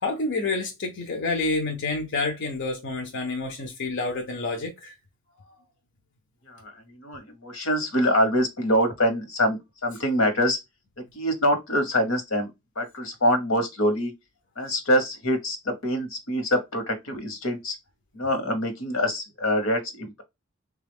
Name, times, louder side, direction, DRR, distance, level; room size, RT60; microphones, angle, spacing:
voice 1, 0.0-4.9, left 3 dB, 60° left, 0.7 m, -28 dB
voice 2, 6.5-10.6 11.1-12.5 12.8-14.1 14.6-17.8 18.1-20.2, equal, 85° left, 1.1 m, -25 dB
3.5 x 2.3 x 3.4 m
head